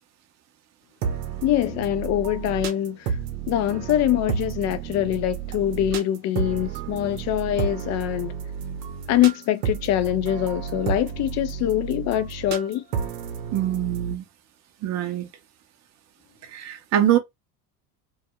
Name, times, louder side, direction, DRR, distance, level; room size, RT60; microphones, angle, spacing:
sound 1, 1.0-14.1, right 7 dB, 70° right, 0.7 m, -31 dB
voice 1, 1.4-3.2 3.5-8.4 9.1-12.9, left 12 dB, 35° left, 0.4 m, -24 dB
voice 2, 13.5-14.2 14.8-15.3 16.4-17.2, right 12 dB, 35° right, 0.6 m, -24 dB
2.3 x 2.1 x 2.9 m
hypercardioid pair, 75°, 49 cm